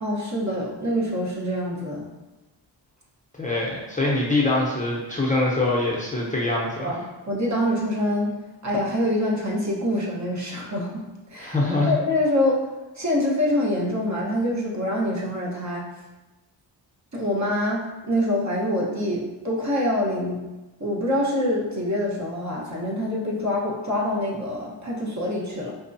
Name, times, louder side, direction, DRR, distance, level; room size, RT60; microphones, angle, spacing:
voice 1, 0.0-2.1 6.8-8.3 8.6-11.0 11.3-11.6 11.8-12.7 12.9-15.8 17.1-20.4 20.8-25.7, left 1 dB, 35° right, -4 dB, 1.1 m, -25 dB
voice 2, 3.4-6.9 11.4-12.0, left 2 dB, 15° left, -5 dB, 0.7 m, -24 dB
5.2 x 2.3 x 2.7 m, 1.1 s
cardioid pair, 60°, 47 cm